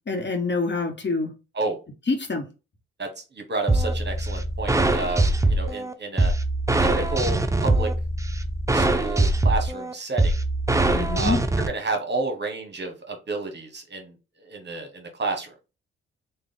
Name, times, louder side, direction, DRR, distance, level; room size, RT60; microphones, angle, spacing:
voice 1, 0.1-1.3 2.1-2.5 10.9-11.4, left 3 dB, 40° left, 5 dB, 1.1 m, -26 dB
voice 2, 3.0-6.3 6.8-7.9 8.7-10.3 11.1-11.4 11.7-14.1 14.4-15.5, right 3 dB, 35° right, 4 dB, 1.1 m, -30 dB
sound 1, 3.7-11.7, right 2 dB, 10° right, 0.5 m, -22 dB
3.3 x 2.3 x 3.7 m, 0.29 s
supercardioid pair, 50°, 29 cm